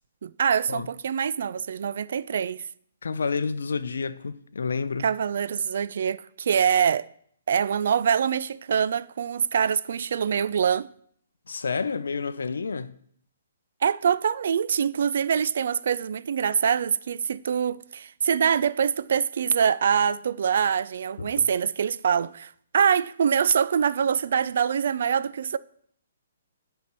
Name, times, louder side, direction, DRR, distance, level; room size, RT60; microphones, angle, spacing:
voice 1, 0.2-2.7 5.0-7.1 7.5-10.9 13.8-25.6, right 7 dB, 55° right, 0.3 m, -24 dB
voice 2, 3.0-5.1 11.5-13.0 21.2-21.5, left 5 dB, 65° left, 0.6 m, -29 dB
9.3 x 4.5 x 6.7 m
figure-of-eight pair, 125°, 0 cm